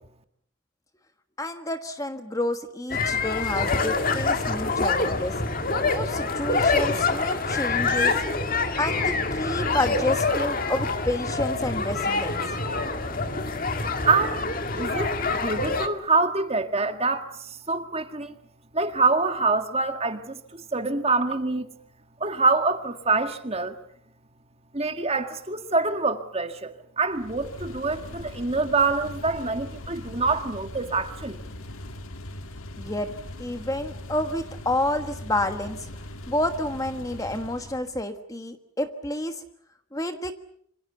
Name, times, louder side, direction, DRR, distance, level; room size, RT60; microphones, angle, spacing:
voice 1, 1.4-5.3 5.8-8.2 8.8-12.4 32.8-33.1 33.4-35.9 36.3-39.4 39.9-40.3, left 1 dB, 15° left, 1.4 m, -29 dB
sound 1, 2.9-15.9, left 3 dB, 40° left, 1.9 m, -26 dB
voice 2, 14.0-14.4 14.8-18.3 18.7-21.7 22.2-23.7 24.7-31.4, right 3 dB, 30° right, 1.8 m, -25 dB
sound 2, 27.1-37.9, left 1 dB, 85° left, 1.8 m, -40 dB
27.5 x 25.5 x 6.9 m
head